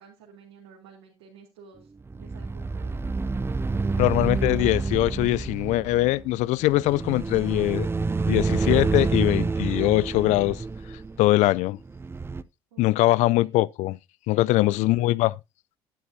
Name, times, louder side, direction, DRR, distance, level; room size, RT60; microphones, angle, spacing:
voice 1, 0.0-1.9 2.2-3.2 12.7-13.5 14.6-15.1, right 5 dB, 80° right, 3.3 m, -51 dB
sound 1, 2.1-12.4, right 3 dB, 20° right, 0.6 m, -28 dB
voice 2, 4.0-7.9 8.3-10.6 11.2-11.8 12.8-14.0 14.3-15.3, left 17 dB, 60° left, 0.5 m, -22 dB
11.0 x 11.0 x 2.7 m
hypercardioid pair, 60°, 13 cm